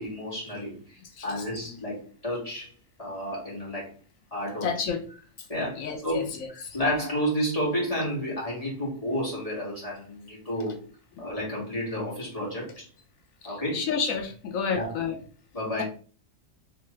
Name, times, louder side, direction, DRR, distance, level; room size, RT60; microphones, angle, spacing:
voice 1, 0.0-2.7 3.0-3.9 4.3-4.7 5.5-10.9 11.2-12.9 13.4-13.9 14.7-15.0 15.5-15.8, equal, 25° left, -6 dB, 2.1 m, -31 dB
voice 2, 4.6-5.0 5.8-6.8 11.2-11.3 13.4-15.2, left 6 dB, 90° left, 5 dB, 1.2 m, -30 dB
3.5 x 3.3 x 3.1 m, 0.40 s
omnidirectional pair, 1.4 m